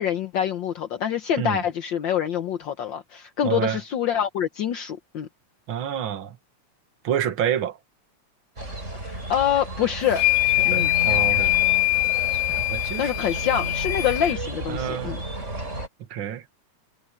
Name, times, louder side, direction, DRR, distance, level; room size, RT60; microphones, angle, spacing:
voice 1, 0.0-5.3 9.0-10.2 10.6-10.9 13.0-15.2, left 9 dB, 65° left, 1.2 m, -26 dB
voice 2, 3.4-3.8 5.7-6.4 7.0-7.8 10.7-11.6 12.3-13.1 14.7-15.2 16.1-16.5, right 9 dB, 50° right, 2.2 m, -28 dB
sound 1, 8.6-15.9, right 1 dB, 25° right, 6.3 m, -32 dB
sound 2, 10.1-14.4, left 27 dB, 80° left, 1.9 m, -23 dB
omnidirectional pair, 3.3 m